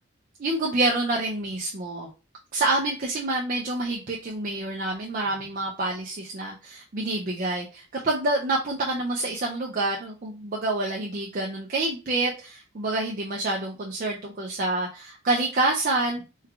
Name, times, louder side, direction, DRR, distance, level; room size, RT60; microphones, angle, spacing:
voice 1, 0.4-2.1 2.5-16.2, right 2 dB, 40° right, -1 dB, 0.5 m, -27 dB
3.4 x 3.2 x 2.3 m, 0.32 s
head